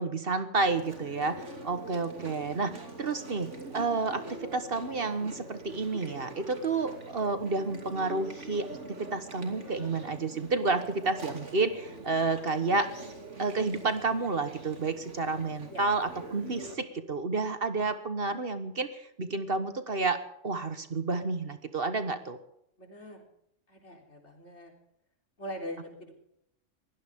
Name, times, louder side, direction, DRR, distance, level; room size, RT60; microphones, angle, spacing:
voice 1, 0.0-12.9 13.4-22.4, right 3 dB, 50° right, 9 dB, 1.5 m, -30 dB
Chewing mastication, 0.6-16.7, right 2 dB, 70° right, 3.1 m, -44 dB
voice 2, 22.8-23.2 23.7-24.7 25.4-26.1, equal, 65° left, 1 dB, 4.1 m, -42 dB
22.0 x 17.0 x 3.7 m, 0.77 s
omnidirectional pair, 1.3 m